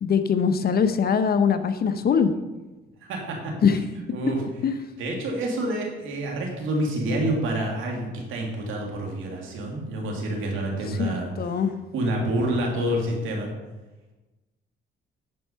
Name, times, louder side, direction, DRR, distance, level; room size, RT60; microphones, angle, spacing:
voice 1, 0.0-2.3 3.6-3.8 4.6-4.8 11.0-11.7, left 6 dB, 50° left, 10 dB, 0.8 m, -22 dB
voice 2, 3.0-3.6 4.1-4.4 5.0-11.3 11.9-13.5, right 1 dB, 85° right, 0 dB, 2.2 m, -28 dB
11.0 x 4.6 x 5.6 m, 1.1 s
cardioid pair, 90°, 20 cm